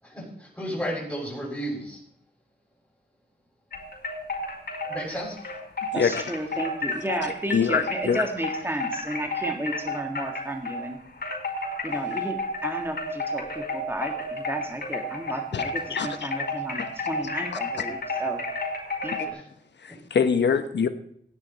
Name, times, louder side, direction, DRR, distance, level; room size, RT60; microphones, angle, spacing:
voice 1, 0.0-2.0 4.9-5.4 19.3-19.5 19.9-20.0, equal, 5° left, -3 dB, 6.6 m, -33 dB
sound 1, 3.7-10.9 11.2-19.3, left 2 dB, 65° left, 5.4 m, -31 dB
voice 2, 5.9-11.0 11.8-18.4 19.0-19.4, right 1 dB, 15° right, 3 dB, 1.9 m, -33 dB
voice 3, 7.5-8.2 15.5-15.6 15.9-16.3 19.1-19.3 19.8-20.9, left 6 dB, 90° left, 10 dB, 1.1 m, -24 dB
15.5 x 10.5 x 4.4 m, 0.66 s
wide cardioid pair, 85°, 18 cm